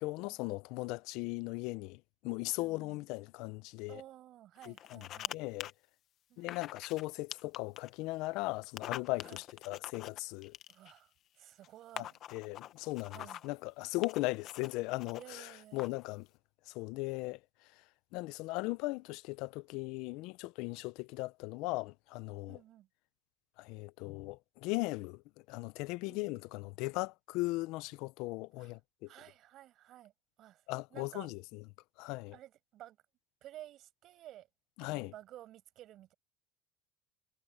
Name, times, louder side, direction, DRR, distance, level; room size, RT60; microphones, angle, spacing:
voice 1, 0.0-4.0 4.7-5.1 5.3-5.7 6.4-10.6 12.0-16.3 16.7-17.4 18.1-22.6 23.6-25.2 25.5-29.1 30.7-31.6 32.0-32.4 34.8-35.1, left 22 dB, 65° left, 0.6 m, -38 dB
voice 2, 2.6-3.0 3.9-5.4 6.3-6.6 9.2-9.4 10.7-12.2 13.1-13.4 15.1-16.0 22.5-22.9 26.1-26.4 28.6-28.7 29.1-30.1 30.4-31.3 32.3-33.0 33.4-34.5 34.8-36.1, right 13 dB, 50° right, 6.1 m, -54 dB
sound 1, 4.6-5.3 5.6-5.7 6.5-7.1 7.3-7.9 8.6-11.0 11.6-11.7 12.0-13.5 14.0-15.2 15.8-16.1, left 12 dB, 45° left, 1.1 m, -44 dB
cardioid pair, 135°, 0 cm